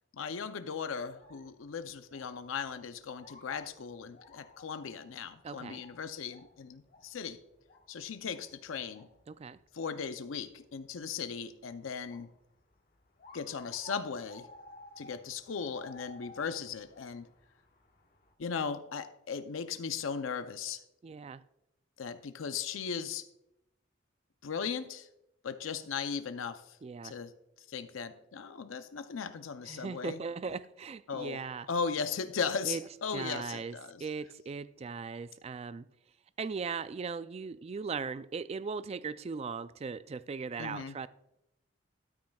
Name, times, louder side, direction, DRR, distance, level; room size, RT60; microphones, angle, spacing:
voice 1, 0.1-7.4 7.9-9.1 9.7-12.3 13.3-14.5 15.0-17.3 18.4-20.8 22.0-23.3 24.4-25.1 25.4-26.8 27.0-27.3 27.7-30.2 31.1-31.4 31.7-34.0 40.6-41.0, left 6 dB, 85° left, 0.5 m, -37 dB
sound 1, 1.1-18.3, left 2 dB, 50° left, 1.4 m, -57 dB
voice 2, 5.4-5.8 9.3-9.6 21.0-21.4 26.8-27.2 29.7-31.7 32.6-32.8 33.1-35.9 36.4-41.1, right 5 dB, 30° right, 0.3 m, -38 dB
13.0 x 9.5 x 2.3 m
head